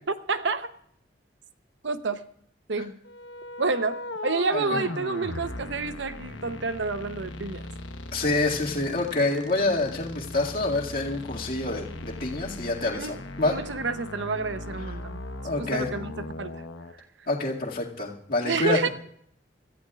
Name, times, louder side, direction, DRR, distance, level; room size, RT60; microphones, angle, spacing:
voice 1, 0.3-0.7 1.8-2.3 2.7-3.0 3.6-7.6 12.9-15.2 15.6-16.6 17.0-17.1 18.4-18.9, right 4 dB, 75° right, 11 dB, 0.8 m, -29 dB
sound 1, 3.0-16.9, left 2 dB, 85° left, 1.1 m, -38 dB
voice 2, 8.1-13.6 15.4-15.9 17.3-18.8, left 2 dB, 50° left, -2 dB, 2.1 m, -27 dB
26.5 x 14.0 x 2.4 m, 0.67 s
head